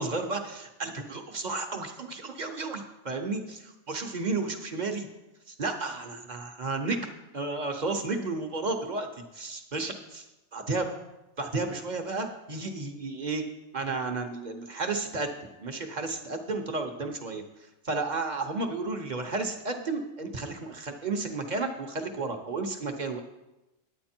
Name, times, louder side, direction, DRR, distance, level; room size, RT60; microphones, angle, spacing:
voice 1, 0.0-5.1 5.5-9.1 9.3-10.3 10.5-10.9 11.4-13.4 13.7-15.3 15.6-23.2, right 3 dB, 35° right, 5 dB, 0.9 m, -32 dB
10.5 x 8.7 x 4.4 m, 0.96 s
omnidirectional pair, 1.4 m